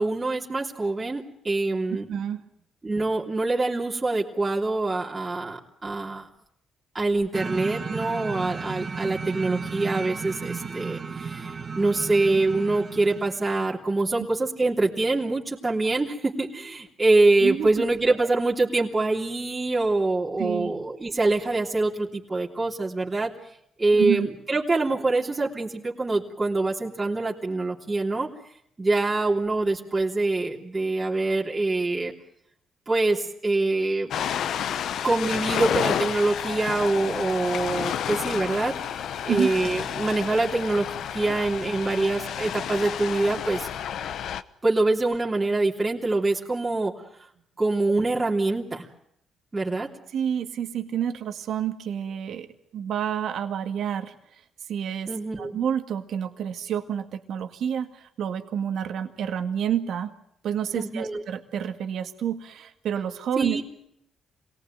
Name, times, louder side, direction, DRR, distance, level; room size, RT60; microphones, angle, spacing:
voice 1, 0.0-2.1 2.8-6.3 6.9-23.3 23.8-28.3 28.8-32.1 32.9-34.1 35.0-39.0 39.2-43.7 44.6-46.9 47.6-48.9 49.5-49.9 55.1-55.6 60.7-61.2 63.4-63.6, right 2 dB, 20° right, -2 dB, 3.3 m, -25 dB
voice 2, 2.1-2.4 17.4-17.7 20.4-20.7 24.0-24.3 39.3-39.5 50.1-52.5 52.7-54.1 54.7-55.1 55.4-60.1 60.4-63.6, right 9 dB, 70° right, 7 dB, 2.0 m, -29 dB
sound 1, 7.3-13.5, right 5 dB, 40° right, 3.0 m, -34 dB
Ocean, 34.1-44.4, left 9 dB, 70° left, 1.0 m, -30 dB
26.5 x 19.0 x 9.2 m, 0.74 s
cardioid pair, 90°, 0 cm